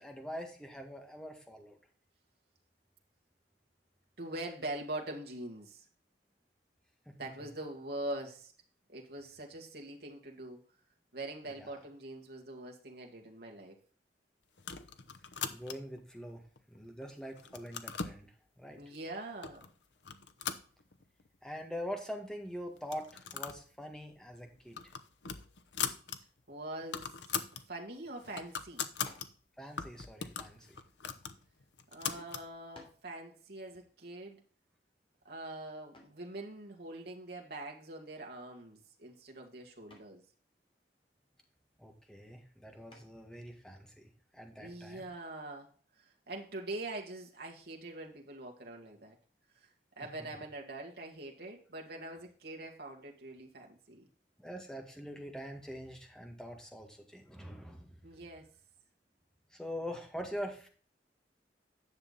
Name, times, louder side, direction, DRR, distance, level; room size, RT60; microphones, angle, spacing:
voice 1, 0.0-1.8 7.0-7.5 11.5-11.7 15.5-16.4 16.7-18.8 21.4-24.8 29.6-30.8 41.8-45.0 54.4-58.0 59.5-60.7, equal, 5° left, 3 dB, 1.9 m, -44 dB
voice 2, 4.2-5.8 7.2-8.5 8.9-10.6 11.1-13.8 18.8-19.6 26.5-27.1 27.7-28.9 31.9-34.4 35.3-40.2 44.6-45.7 46.3-49.2 49.6-49.7 50.0-54.1 58.0-58.5, right 2 dB, 65° right, 0 dB, 2.1 m, -43 dB
sound 1, 14.6-16.0 16.6-17.1 17.4-18.2 18.9-19.0 19.4-19.7 20.0-21.3 21.6-21.7 21.9-22.0 22.8-23.6 24.0-24.1 24.5-26.2 26.5-26.6 26.8-27.6 28.0-29.3 29.8-32.5, left 7 dB, 80° left, 0.9 m, -40 dB
sound 2, 29.0-29.4 30.4-31.5 32.2-32.3 32.7-33.1 35.9-36.3 38.2-38.6 38.9-39.3 39.9-40.2 42.9-43.3, left 2 dB, 30° left, 2.8 m, -58 dB
10.5 x 7.0 x 4.1 m, 0.41 s
head